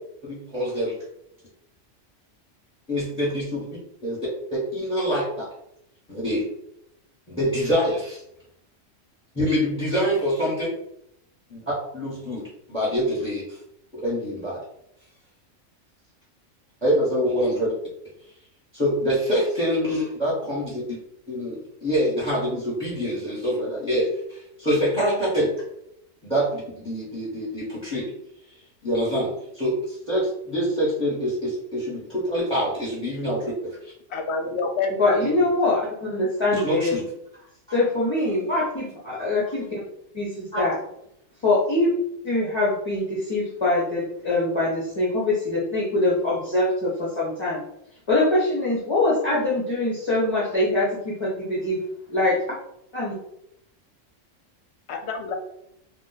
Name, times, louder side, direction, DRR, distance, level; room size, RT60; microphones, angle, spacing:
voice 1, 0.3-1.0 2.9-3.7 4.0-5.4 6.1-6.4 7.3-8.2 9.3-10.7 11.5-13.4 13.9-14.6 16.8-17.7 18.7-20.8 21.3-25.5 26.2-28.1 28.8-33.9 36.6-37.0 40.5-40.6, equal, 5° left, -8 dB, 1.0 m, -25 dB
voice 2, 34.1-35.4 54.9-55.3, left 4 dB, 65° left, 4 dB, 0.8 m, -27 dB
voice 3, 35.0-37.0 37.7-39.8 40.1-40.7 41.4-41.9 42.2-47.6 48.1-51.8 52.1-52.4 52.9-53.1, left 2 dB, 30° left, -6 dB, 0.5 m, -23 dB
2.4 x 2.3 x 3.9 m, 0.77 s
omnidirectional pair, 1.3 m